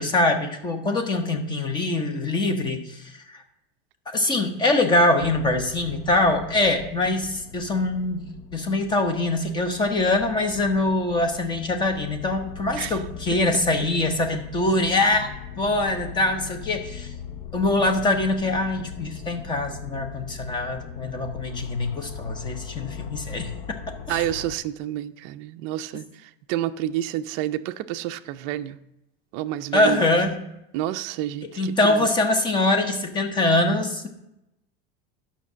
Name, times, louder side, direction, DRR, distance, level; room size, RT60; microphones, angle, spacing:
voice 1, 0.0-3.4 4.1-8.3 8.5-15.3 15.6-17.1 17.5-23.5 24.1-24.2 29.7-30.4 31.6-34.1, left 2 dB, 15° left, 6 dB, 0.9 m, -23 dB
sound 1, 5.2-24.5, left 7 dB, 70° left, 0.8 m, -40 dB
voice 2, 24.1-28.8 29.3-30.2 30.7-32.1, right 13 dB, 40° right, 10 dB, 0.5 m, -29 dB
11.0 x 5.8 x 7.3 m, 0.87 s
supercardioid pair, 160°, 29 cm